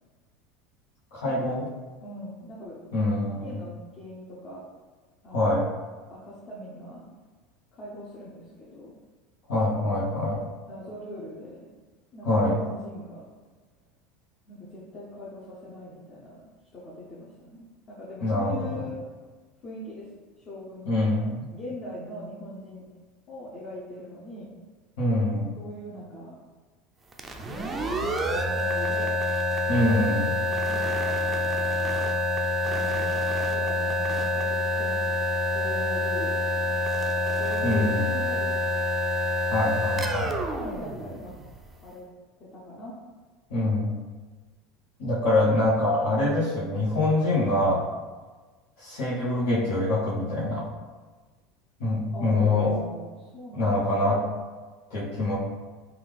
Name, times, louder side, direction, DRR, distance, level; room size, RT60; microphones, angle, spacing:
voice 1, 1.1-1.6 2.9-3.5 5.3-5.7 9.5-10.4 12.2-12.6 18.2-18.8 20.8-21.5 25.0-25.5 29.7-30.4 37.6-38.0 39.5-40.3 43.5-43.9 45.0-47.9 48.8-50.7 51.8-52.7 53.5-54.2 54.9-55.4, left 2 dB, 90° left, -10 dB, 1.0 m, -24 dB
voice 2, 2.0-2.8 3.4-4.7 5.2-5.5 6.1-7.1 7.7-8.9 10.7-11.7 12.1-13.3 14.5-19.0 19.6-20.1 20.4-21.2 21.5-22.9 23.3-24.5 25.6-26.4 27.4-29.2 30.6-31.1 32.8-35.2 35.5-36.8 37.3-38.8 40.6-41.3 41.7-42.1 42.4-43.0 52.1-54.0, left 1 dB, 35° left, -7 dB, 0.8 m, -41 dB
sound 1, 27.1-41.7, left 1 dB, 15° right, 0.3 m, -27 dB
3.5 x 2.3 x 3.5 m, 1.3 s
supercardioid pair, 135°, 0 cm